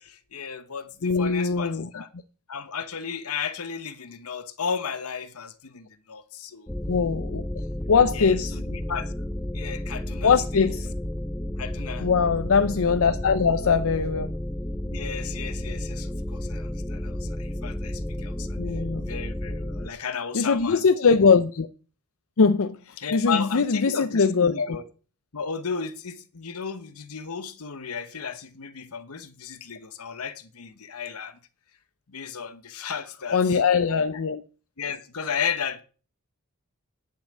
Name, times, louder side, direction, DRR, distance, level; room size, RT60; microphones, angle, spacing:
voice 1, 0.0-2.1 2.5-6.7 8.1-9.1 9.5-10.7 11.6-12.1 14.9-18.5 19.0-20.8 23.0-24.9 25.3-31.4 32.1-33.6 34.8-35.8, left 6 dB, 85° left, 1.0 m, -34 dB
voice 2, 1.0-1.9 6.9-7.4 7.9-8.6 10.2-10.9 12.0-14.3 18.6-19.0 20.3-21.7 22.4-24.8 33.3-34.4, left 5 dB, 65° left, 0.6 m, -21 dB
sound 1, 6.7-19.9, left 1 dB, 10° left, 0.6 m, -32 dB
10.5 x 5.7 x 7.3 m
head